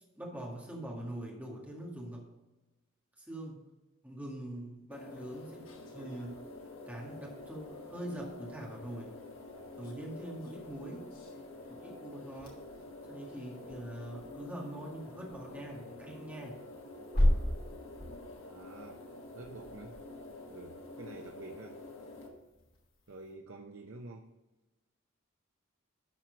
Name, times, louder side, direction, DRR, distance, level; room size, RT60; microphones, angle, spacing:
voice 1, 0.2-2.3 3.2-3.6 4.0-5.7 5.9-6.4 6.9-9.2 9.8-11.1 11.7-12.6 13.1-16.6, right 1 dB, 10° right, -2 dB, 1.9 m, -43 dB
sound 1, 4.9-22.3, left 2 dB, 80° left, 1.6 m, -48 dB
sound 2, 5.1-23.3, left 1 dB, 45° left, 2.7 m, -40 dB
voice 2, 18.5-19.0 19.3-20.0 20.5-21.8 23.1-24.3, right 2 dB, 70° right, 3 dB, 0.7 m, -48 dB
12.0 x 4.5 x 5.1 m, 1.1 s
head